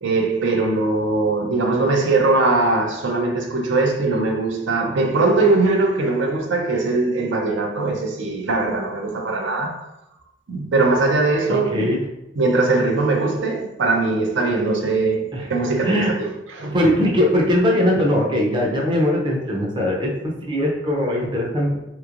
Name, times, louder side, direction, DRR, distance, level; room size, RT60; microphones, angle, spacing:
voice 1, 0.0-9.8 10.5-11.9 12.4-16.8, right 3 dB, 80° right, 0.5 m, -21 dB
voice 2, 11.5-12.0 15.3-15.5 15.8-16.2 16.6-21.8, left 1 dB, 25° right, 0.5 m, -20 dB
3.4 x 3.0 x 2.4 m
head